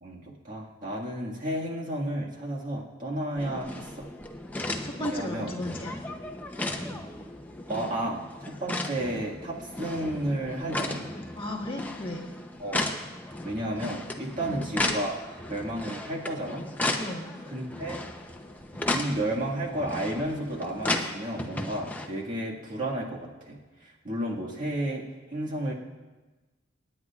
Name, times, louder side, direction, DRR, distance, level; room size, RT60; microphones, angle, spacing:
voice 1, 0.0-4.1 5.0-5.5 7.7-11.2 12.6-12.9 13.4-15.2 15.5-16.7 17.5-18.0 18.7-25.7, right 1 dB, 45° right, -3 dB, 1.8 m, -32 dB
sound 1, 3.4-22.1, left 2 dB, 10° left, 0.7 m, -35 dB
voice 2, 4.8-5.9 11.4-12.2 14.4-14.7 17.0-17.3, left 1 dB, 30° left, -2 dB, 1.7 m, -35 dB
26.5 x 9.4 x 2.4 m, 1.2 s
head